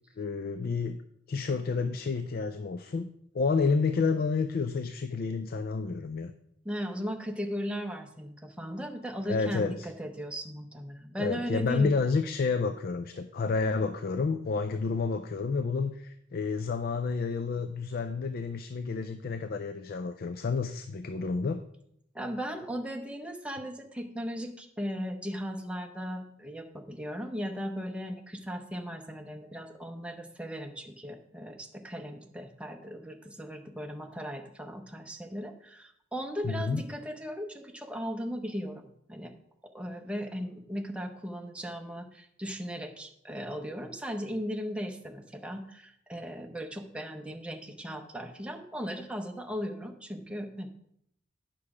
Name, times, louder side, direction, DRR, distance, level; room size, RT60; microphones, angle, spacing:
voice 1, 0.2-1.0 1.3-3.1 3.3-6.3 9.3-9.9 11.2-21.6 36.4-36.8, left 4 dB, 50° left, 9 dB, 0.4 m, -30 dB
voice 2, 6.6-12.0 22.1-39.3 39.7-50.7, equal, 5° right, 3 dB, 0.8 m, -37 dB
8.5 x 6.0 x 4.8 m, 0.73 s
head